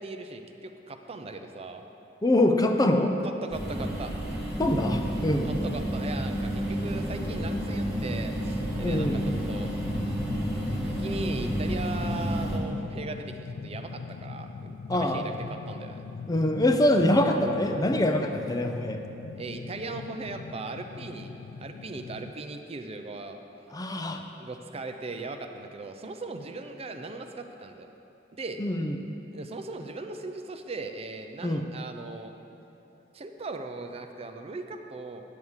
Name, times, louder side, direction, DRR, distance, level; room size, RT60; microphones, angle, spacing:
voice 1, 0.0-1.8 3.2-4.1 5.4-9.7 10.7-16.0 19.4-21.3 21.6-23.4 24.4-27.9 28.3-28.6 29.3-32.3 33.1-35.2, right 3 dB, 35° right, 6 dB, 0.5 m, -38 dB
voice 2, 2.2-3.2 4.6-5.5 8.8-9.2 14.9-15.3 16.3-19.0 23.7-24.2 28.6-28.9 31.4-31.6, left 1 dB, 20° left, 5 dB, 0.5 m, -24 dB
sound 1, 3.5-12.6, equal, 5° right, 1.4 m, -30 dB
sound 2, 8.7-22.3, left 4 dB, 80° left, 0.4 m, -41 dB
9.4 x 6.4 x 7.2 m, 2.9 s
head